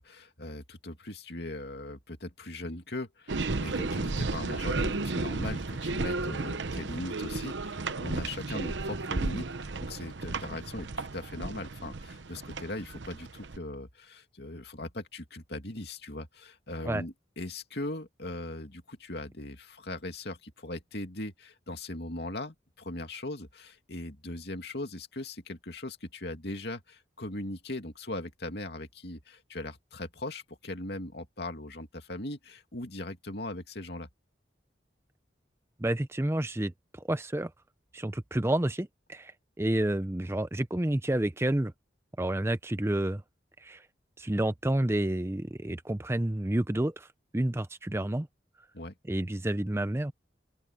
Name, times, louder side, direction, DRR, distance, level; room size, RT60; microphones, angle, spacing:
voice 1, 0.0-34.1 48.7-49.0, left 1 dB, 60° left, 2.6 m, -39 dB
sound 1, 3.3-13.6, right 3 dB, 75° right, 0.9 m, -33 dB
voice 2, 35.8-36.7 37.1-37.5 37.9-39.3 39.6-41.7 42.2-43.2 43.6-43.8 44.2-47.1 47.3-48.3 49.1-50.1, right 1 dB, 15° right, 0.6 m, -29 dB
open air
head